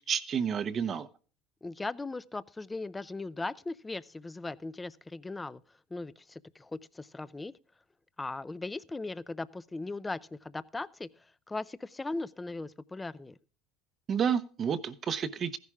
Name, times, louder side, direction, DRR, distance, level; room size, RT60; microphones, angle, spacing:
voice 1, 0.1-1.1 14.1-15.6, right 7 dB, 30° right, 0.8 m, -30 dB
voice 2, 1.6-5.6 5.9-7.5 8.2-13.4, left 3 dB, 10° left, 0.5 m, -38 dB
15.0 x 11.0 x 3.6 m
cardioid pair, 145°, 0 cm